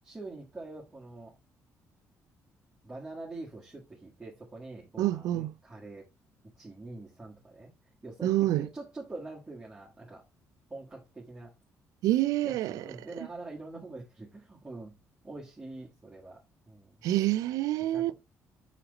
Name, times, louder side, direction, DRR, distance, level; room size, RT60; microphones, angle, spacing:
voice 1, 0.0-1.3 2.8-6.1 6.6-7.7 8.0-10.2 10.7-11.5 12.4-14.9 15.2-17.0 17.8-18.1, right 2 dB, 15° right, 1.6 m, -44 dB
voice 2, 5.0-5.5 8.2-8.7 12.0-12.8 17.0-18.1, right 14 dB, 85° right, 0.4 m, -27 dB
5.9 x 5.1 x 3.9 m
cardioid pair, 130°, 6 cm